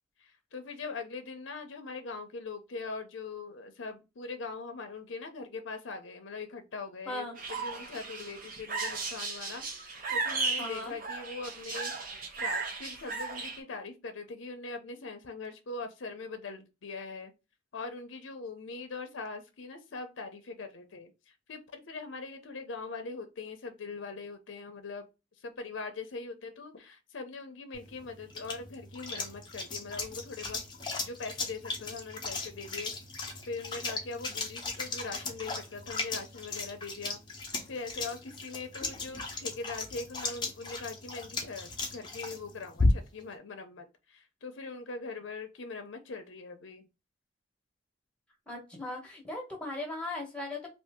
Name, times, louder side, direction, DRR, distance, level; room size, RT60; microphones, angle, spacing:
voice 1, 0.2-17.3 17.7-25.1 25.4-30.6 31.0-37.2 37.4-46.8, left 4 dB, 75° left, 0.6 m, -41 dB
voice 2, 7.1-7.4 10.6-10.9 48.5-50.7, left 2 dB, 5° left, 1.0 m, -38 dB
sound 1, 7.4-13.6, right 4 dB, 45° right, 0.7 m, -35 dB
sound 2, 27.7-43.3, left 3 dB, 25° left, 0.7 m, -36 dB
2.7 x 2.5 x 3.4 m
head